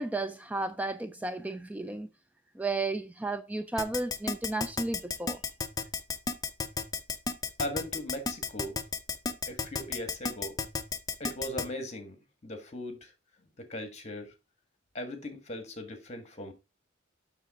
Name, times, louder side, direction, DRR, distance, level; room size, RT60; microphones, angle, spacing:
voice 1, 0.0-2.1 2.6-5.4, right 2 dB, 10° right, 0.3 m, -33 dB
Keyboard (musical), 3.8-11.6, left 4 dB, 20° left, 0.7 m, -32 dB
voice 2, 7.6-8.8 9.5-10.6 11.2-12.2 12.4-13.1 13.6-14.3 14.9-16.5, left 1 dB, 35° left, 1.7 m, -38 dB
7.4 x 6.2 x 3.6 m
head